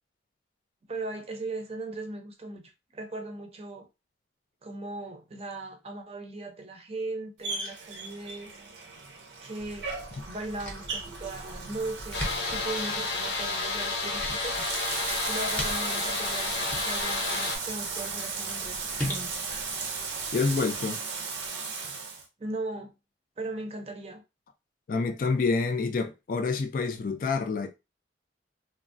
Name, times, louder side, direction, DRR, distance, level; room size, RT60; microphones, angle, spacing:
voice 1, 0.9-3.9 4.6-8.5 9.4-9.9 10.3-14.6 15.3-19.7 22.4-22.9 23.4-24.2, right 2 dB, 35° right, 0.5 m, -38 dB
Bathtub (filling or washing), 7.4-22.2, right 4 dB, 80° right, 0.6 m, -36 dB
sound 1, 9.6-20.8, equal, 10° left, 0.7 m, -41 dB
sound 2, 12.1-17.6, left 3 dB, 80° left, 0.8 m, -31 dB
voice 2, 20.3-21.0 24.9-27.7, left 4 dB, 50° left, 0.3 m, -27 dB
3.3 x 2.0 x 2.5 m
head